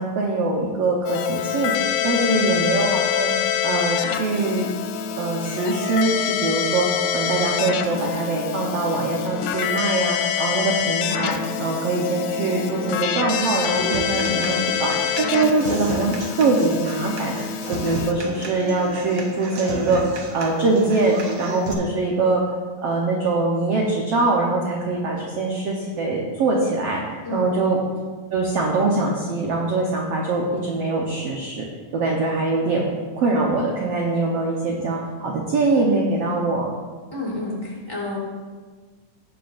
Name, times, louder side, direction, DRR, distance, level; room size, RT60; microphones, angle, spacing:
voice 1, 0.0-1.8 2.0-3.3 3.6-4.7 5.2-14.9 15.2-17.3 17.7-20.0 20.3-22.4 22.8-27.0 27.3-27.8 28.3-31.6 31.9-32.9 33.2-36.7, right 3 dB, 65° right, -2 dB, 1.6 m, -23 dB
Keyboard (musical), 1.1-18.1, left 8 dB, 85° left, 2.3 m, -26 dB
voice 2, 2.1-2.6 27.2-27.5 37.1-38.2, left 2 dB, 10° left, -6 dB, 2.9 m, -29 dB
Human voice / Acoustic guitar, 13.7-21.7, right 3 dB, 90° right, 1.0 m, -32 dB
18.0 x 7.8 x 2.6 m, 1.4 s
omnidirectional pair, 3.9 m